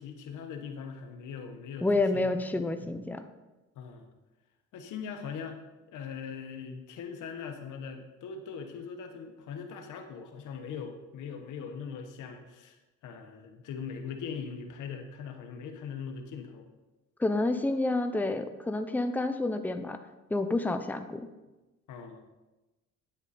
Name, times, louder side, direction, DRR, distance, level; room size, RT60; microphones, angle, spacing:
voice 1, 0.0-1.9 2.1-2.3 2.5-2.9 3.7-4.1 4.7-5.6 5.9-12.8 13.0-16.7 21.9-22.2, left 6 dB, 85° left, 5 dB, 1.3 m, -41 dB
voice 2, 1.8-3.2 17.2-20.0 20.3-21.2, left 2 dB, 5° left, 8 dB, 0.7 m, -29 dB
9.6 x 8.0 x 4.3 m, 1.1 s
cardioid pair, 90°, 30 cm